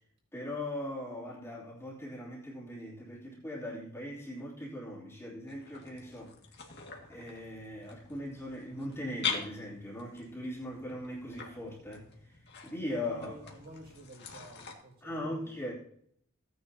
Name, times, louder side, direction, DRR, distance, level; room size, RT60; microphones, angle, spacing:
voice 1, 0.3-6.3 7.1-13.3 15.0-15.7, left 1 dB, 10° left, 3.0 m, -40 dB
sound 1, 5.5-14.7, left 6 dB, 50° left, 2.0 m, -43 dB
voice 2, 12.9-15.7, right 1 dB, 50° right, 5.7 m, -52 dB
17.0 x 9.7 x 2.8 m
head